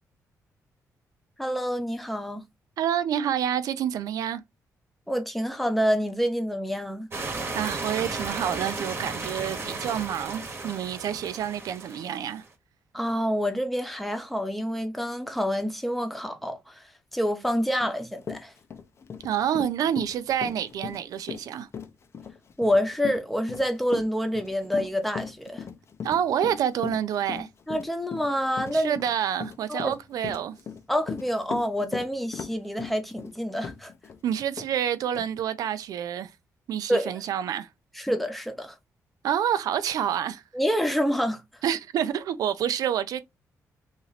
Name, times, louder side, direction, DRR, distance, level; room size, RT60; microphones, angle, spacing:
voice 1, 1.4-2.4 5.1-7.1 12.9-16.8 17.1-18.5 22.6-25.6 27.7-28.9 29.7-29.9 30.9-33.9 36.9-37.1 38.0-38.7 40.5-41.4, equal, ahead, 0.9 m, -27 dB
voice 2, 2.8-4.4 7.5-12.4 19.2-21.7 26.0-27.5 28.7-30.6 34.2-36.3 36.7-37.7 39.2-40.4 41.6-43.2, right 9 dB, 75° right, 0.5 m, -28 dB
sound 1, 7.1-12.5, right 3 dB, 40° right, 1.1 m, -34 dB
Run, 17.8-17.9 18.2-34.2 34.6-34.7 35.1-35.3, left 6 dB, 45° left, 0.6 m, -38 dB
3.0 x 2.7 x 4.0 m
cardioid pair, 95°, 6 cm